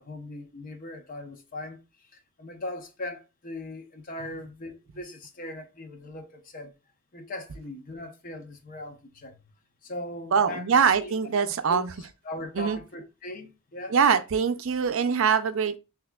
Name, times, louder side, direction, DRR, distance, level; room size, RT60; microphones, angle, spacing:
voice 1, 0.0-1.8 2.1-6.7 7.1-9.4 9.8-11.1 11.7-11.8 12.2-13.9, left 2 dB, 40° left, 0.7 m, -39 dB
voice 2, 10.3-11.9 12.6-12.8 13.9-15.8, right 6 dB, 65° right, 0.4 m, -23 dB
5.8 x 2.8 x 2.2 m
head